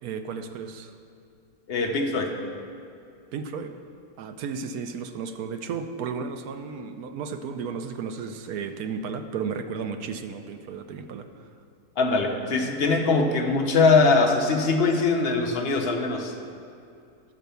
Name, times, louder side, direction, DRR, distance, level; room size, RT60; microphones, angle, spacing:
voice 1, 0.0-0.9 3.3-3.8 4.2-11.5, right 6 dB, 75° right, 7 dB, 1.1 m, -34 dB
voice 2, 1.7-2.3 12.0-16.3, left 3 dB, 50° left, 2 dB, 0.9 m, -22 dB
12.0 x 4.5 x 6.8 m, 2.4 s
omnidirectional pair, 1.7 m